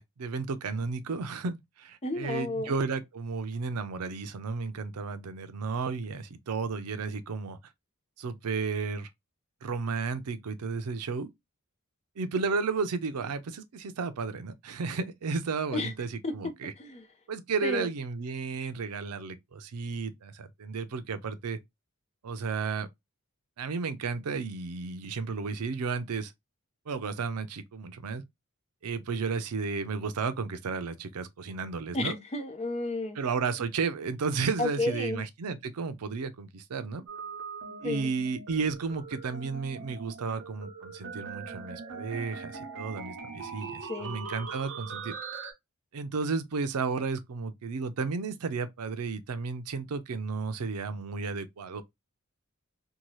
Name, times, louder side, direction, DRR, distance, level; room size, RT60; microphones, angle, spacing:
voice 1, 0.0-7.6 8.2-9.1 9.6-11.3 12.2-16.7 17.3-21.6 22.2-22.9 23.6-26.3 26.9-28.2 28.8-32.2 33.2-37.1 37.8-45.1 45.9-51.8, right 4 dB, 90° right, 0.5 m, -33 dB
voice 2, 2.0-2.7 15.7-15.9 16.2-16.5 16.8-17.0 17.6-17.9 31.9-33.2 34.6-35.2 37.8-38.1 43.9-44.2, left 2 dB, 30° left, 0.6 m, -32 dB
sound 1, 37.1-45.5, right 5 dB, 60° right, 0.9 m, -41 dB
2.8 x 2.2 x 3.0 m
head